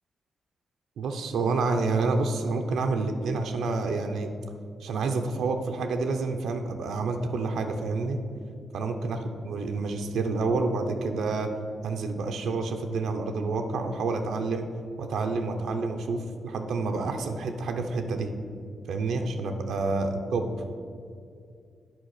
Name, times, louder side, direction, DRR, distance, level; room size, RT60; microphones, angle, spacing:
voice 1, 1.0-4.3 4.8-8.2 8.7-11.5 11.8-14.7 15.0-18.3 18.9-20.5, right 3 dB, 90° right, 4 dB, 0.7 m, -28 dB
9.1 x 4.6 x 6.5 m, 2.4 s
cardioid pair, 105°, 0 cm